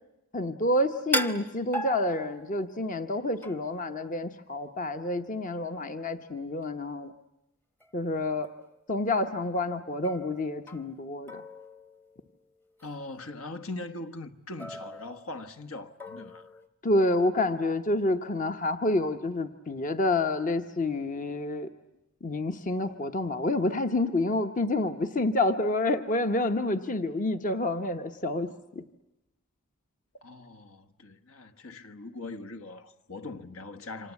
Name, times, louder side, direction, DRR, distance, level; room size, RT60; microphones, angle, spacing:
voice 1, 0.3-7.1 7.9-8.5 8.9-11.4 16.8-21.7 22.2-28.8, left 2 dB, 35° left, 1.0 m, -28 dB
sound 1, 1.1-2.7 3.4-3.8 7.8-7.9 8.4-8.8 10.0-11.0 11.3-12.4 12.8-13.0 14.6-15.6 16.0-16.7, equal, 10° left, 0.9 m, -37 dB
voice 2, 12.8-16.5 30.2-34.1, left 2 dB, 70° left, 1.4 m, -41 dB
28.0 x 25.5 x 8.3 m
head